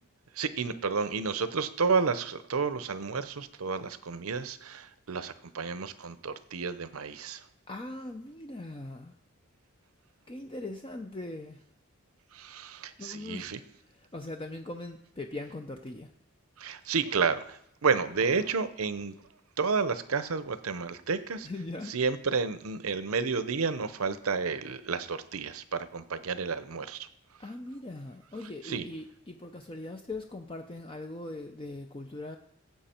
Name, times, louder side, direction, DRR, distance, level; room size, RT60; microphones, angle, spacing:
voice 1, 0.4-7.4 12.3-13.6 16.6-19.1 19.6-21.5 21.8-27.1 28.4-28.9, right 5 dB, 80° right, 13 dB, 0.7 m, -31 dB
voice 2, 7.7-9.1 10.3-11.6 13.0-13.5 14.1-16.1 21.4-21.9 27.4-32.4, left 2 dB, 25° left, 5 dB, 0.5 m, -40 dB
17.0 x 7.9 x 4.4 m, 0.75 s
head